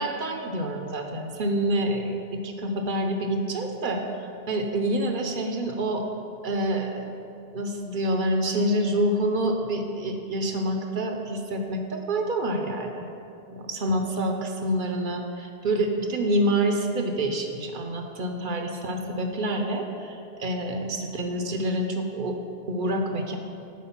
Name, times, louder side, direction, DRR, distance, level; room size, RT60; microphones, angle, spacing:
voice 1, 0.0-6.0 6.4-7.2 7.5-13.1 13.5-22.4 22.7-23.4, right 1 dB, 55° right, 3 dB, 0.8 m, -27 dB
7.4 x 4.9 x 5.8 m, 2.7 s
omnidirectional pair, 1.0 m